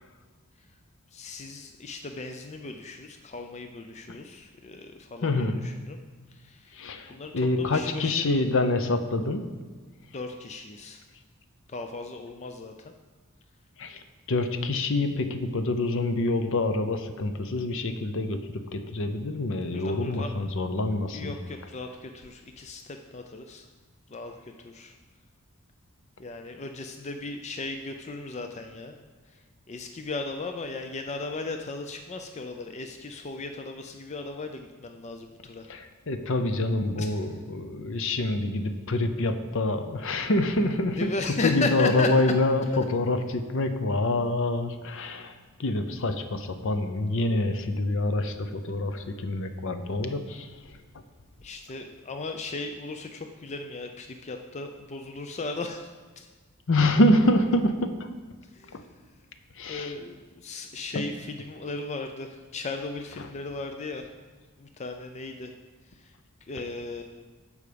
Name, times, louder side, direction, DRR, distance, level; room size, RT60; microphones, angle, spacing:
voice 1, 1.1-6.0 6.3-6.8 7.1-8.3 10.1-11.0 11.7-12.9 19.7-20.3 21.1-23.7 24.1-24.9 26.2-29.0 29.3-29.4 29.7-35.7 37.0-37.4 40.9-42.3 42.7-42.8 51.4-55.9 56.2-56.3 58.5-59.0 59.7-64.1 64.6-65.5 65.9-66.1 66.4-67.2, left 3 dB, 30° left, 5 dB, 0.5 m, -36 dB
voice 2, 5.2-5.6 6.8-9.4 13.8-14.0 14.3-18.4 18.7-21.3 35.7-41.1 41.4-45.3 45.6-50.5 56.7-58.1 59.6-59.9, left 2 dB, 60° left, 9 dB, 0.7 m, -26 dB
13.5 x 4.9 x 5.1 m, 1.4 s
head